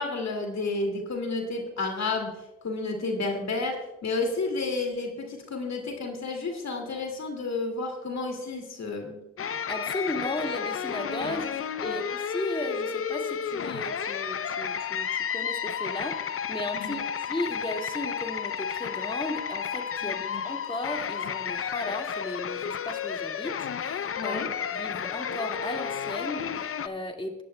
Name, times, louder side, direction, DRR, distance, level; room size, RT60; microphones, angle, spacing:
voice 1, 0.0-9.2 11.2-11.4 11.8-12.0 16.7-17.0 20.0-20.4 24.2-24.5, left 3 dB, 65° left, 3 dB, 2.3 m, -31 dB
sound 1, 9.4-26.9, left 7 dB, 50° left, 0.6 m, -32 dB
voice 2, 9.7-11.5 11.8-16.2 16.5-24.4 24.7-27.4, left 1 dB, 15° left, 2 dB, 2.0 m, -35 dB
19.0 x 10.5 x 2.2 m, 0.94 s
supercardioid pair, 45°, 29 cm